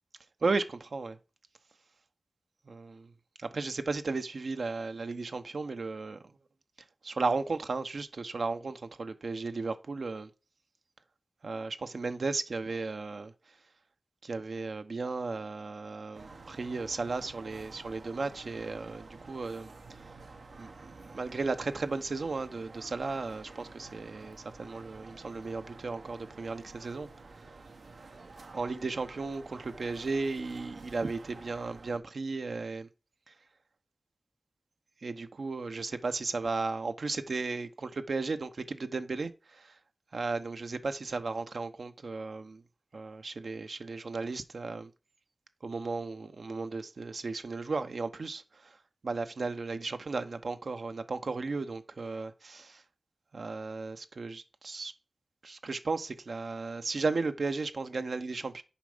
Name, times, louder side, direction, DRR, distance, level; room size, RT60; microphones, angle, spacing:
voice 1, 0.4-1.2 2.7-3.1 3.4-6.3 7.0-10.3 11.4-13.5 14.2-20.1 20.6-27.6 28.5-32.9 33.3-33.4 35.0-39.8 40.1-42.6 42.9-44.9 45.6-48.8 49.0-52.8 53.3-54.9 55.4-58.6, right 3 dB, 70° right, 0.9 m, -35 dB
sound 1, 16.1-32.0, right 3 dB, 85° right, 1.2 m, -50 dB
7.2 x 5.3 x 5.0 m
wide cardioid pair, 75°, 0 cm